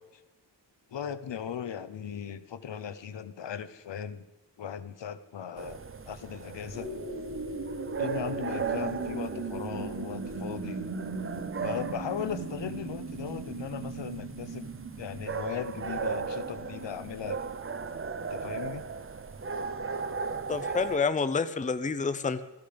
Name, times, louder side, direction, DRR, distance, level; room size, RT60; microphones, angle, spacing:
voice 1, 0.9-4.2 4.6-5.8 6.1-6.9 8.0-10.8 11.6-14.7 15.0-17.4 18.3-18.9, left 8 dB, 70° left, 11 dB, 1.0 m, -37 dB
sound 1, 5.6-21.0, right 5 dB, 30° right, 0.6 m, -37 dB
sound 2, 6.7-15.3, right 3 dB, 55° right, 2.3 m, -37 dB
voice 2, 20.5-22.4, left 4 dB, 15° left, 12 dB, 0.6 m, -28 dB
17.0 x 13.5 x 5.1 m, 1.1 s
wide cardioid pair, 130°, 45 cm